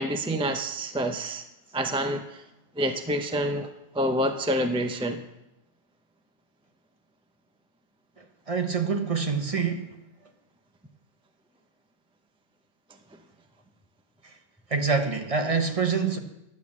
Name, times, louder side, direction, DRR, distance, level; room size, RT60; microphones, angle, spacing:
voice 1, 0.0-1.4 1.7-2.4 2.8-3.7 3.9-5.2, equal, 10° right, 6 dB, 0.3 m, -27 dB
voice 2, 8.5-9.9 14.7-16.2, right 5 dB, 30° right, 5 dB, 0.9 m, -26 dB
11.0 x 8.2 x 7.2 m, 0.91 s
omnidirectional pair, 1.3 m